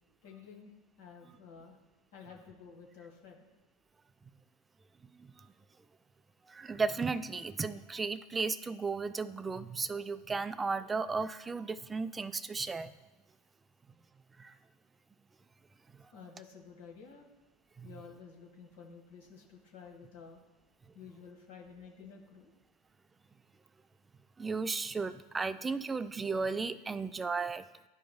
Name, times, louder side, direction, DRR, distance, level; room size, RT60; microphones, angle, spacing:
voice 1, 0.2-0.7 1.0-1.8 2.1-3.4 16.1-17.3 17.8-20.4 20.9-22.5, left 6 dB, 70° left, 0 dB, 1.5 m, -52 dB
voice 2, 6.5-12.9 14.4-14.5 17.8-17.9 24.4-27.6, right 4 dB, 20° right, 13 dB, 0.3 m, -35 dB
11.0 x 4.6 x 2.2 m, 1.2 s
hypercardioid pair, 85°, 0 cm